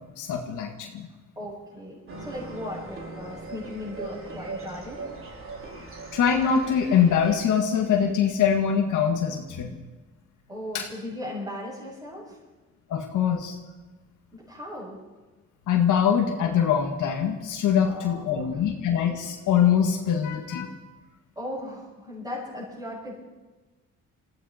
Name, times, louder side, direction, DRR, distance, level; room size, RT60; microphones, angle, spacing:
voice 1, 0.2-1.1 6.1-9.8 10.7-10.9 12.9-13.6 15.7-20.7, left 8 dB, 80° left, 2 dB, 1.8 m, -23 dB
voice 2, 1.3-5.1 10.5-12.4 14.3-15.0 17.8-18.5 21.3-23.2, left 1 dB, 10° right, -6 dB, 6.8 m, -37 dB
sound 1, 2.1-7.4, right 3 dB, 45° right, 3.4 m, -39 dB
21.0 x 15.5 x 4.3 m, 1.2 s
cardioid pair, 90°, 30 cm